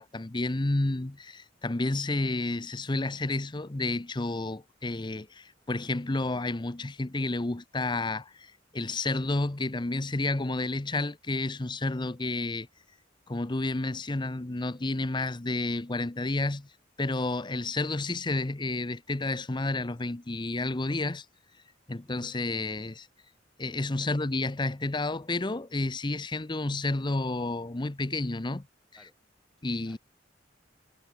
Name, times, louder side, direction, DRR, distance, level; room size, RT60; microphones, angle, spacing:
voice 1, 0.0-12.7 13.3-16.7 17.0-21.2 21.9-23.1 23.6-28.7 29.6-30.0, left 2 dB, 25° left, 0.7 m, -30 dB
voice 2, 29.6-30.0, equal, ahead, 4.5 m, -61 dB
head